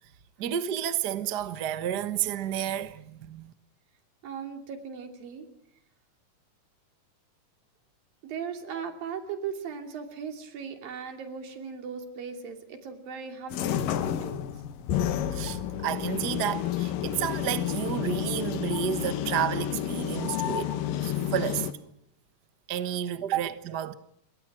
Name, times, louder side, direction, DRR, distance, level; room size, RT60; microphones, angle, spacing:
voice 1, 0.4-3.5 15.0-20.7 21.0-21.7 22.7-23.9, right 10 dB, 65° right, 1.0 m, -31 dB
voice 2, 4.2-5.5 8.2-14.5, right 6 dB, 85° right, 4.5 m, -38 dB
sound 1, 13.5-21.7, left 11 dB, 75° left, 2.9 m, -30 dB
28.5 x 22.5 x 6.1 m
omnidirectional pair, 4.0 m